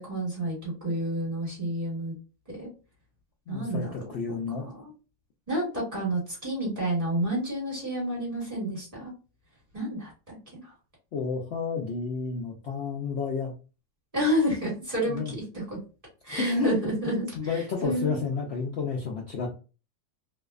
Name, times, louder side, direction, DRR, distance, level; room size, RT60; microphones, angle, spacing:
voice 1, 0.0-2.1 2.5-2.7 3.5-3.9 4.5-4.9 5.5-9.1 9.7-10.7 14.1-15.2 15.5-15.8 16.2-18.3, right 1 dB, 25° right, -4 dB, 1.2 m, -30 dB
voice 2, 3.5-4.7 11.1-13.5 15.1-15.3 16.4-16.8 17.4-19.6, left 4 dB, 85° left, -1 dB, 0.5 m, -30 dB
2.6 x 2.1 x 2.3 m, 0.33 s
omnidirectional pair, 1.7 m